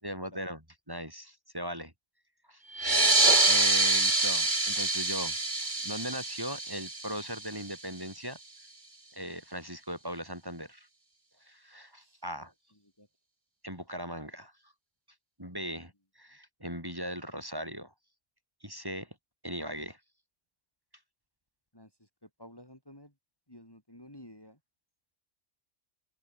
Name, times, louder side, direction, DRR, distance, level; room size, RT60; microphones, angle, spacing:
voice 1, 0.0-1.9 2.5-2.6 3.5-5.4 5.6-8.4 9.1-10.9 11.4-12.5 13.6-14.5 15.4-17.9 18.6-19.1 19.4-20.0, equal, 15° right, 5.8 m, -39 dB
sound 1, 2.7-7.9, right 2 dB, 40° right, 3.0 m, -26 dB
voice 2, 22.4-23.1 23.5-24.6, left 1 dB, 20° left, 4.2 m, -51 dB
omnidirectional pair, 1.3 m